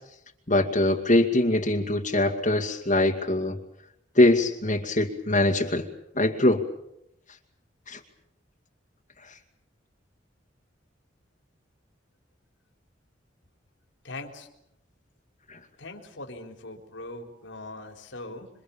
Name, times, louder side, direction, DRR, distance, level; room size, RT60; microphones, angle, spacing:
voice 1, 0.5-3.6 4.2-5.9 6.2-6.6 7.9-8.0 15.5-15.6, left 1 dB, 45° left, 1 dB, 2.3 m, -22 dB
voice 2, 14.0-14.5 15.8-18.5, left 2 dB, 85° left, 3 dB, 4.0 m, -41 dB
27.5 x 25.0 x 7.2 m, 0.79 s
head